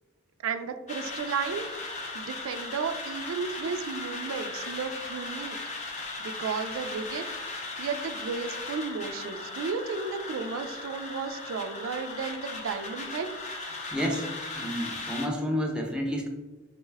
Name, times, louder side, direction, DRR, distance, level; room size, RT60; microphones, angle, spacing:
voice 1, 0.4-5.9 6.2-13.3, right 5 dB, 80° right, 8 dB, 0.4 m, -34 dB
sound 1, 0.9-15.3, left 3 dB, 35° left, 0.6 m, -37 dB
voice 2, 13.9-14.3 14.6-16.3, equal, 5° right, 0 dB, 0.6 m, -30 dB
5.4 x 2.1 x 3.3 m, 1.2 s
head